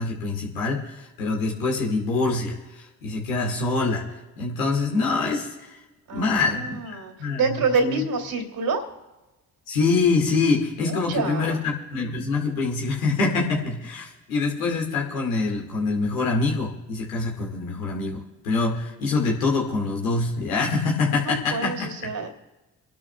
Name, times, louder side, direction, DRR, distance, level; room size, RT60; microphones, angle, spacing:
voice 1, 0.0-4.0 4.4-5.8 6.1-7.6 7.9-8.0 9.7-22.1, left 3 dB, 90° left, -1 dB, 2.3 m, -25 dB
voice 2, 6.1-8.8 10.9-11.6 21.2-22.3, right 4 dB, 60° right, 2 dB, 3.2 m, -27 dB
30.0 x 12.0 x 2.4 m, 1.1 s
hypercardioid pair, 45°, 40 cm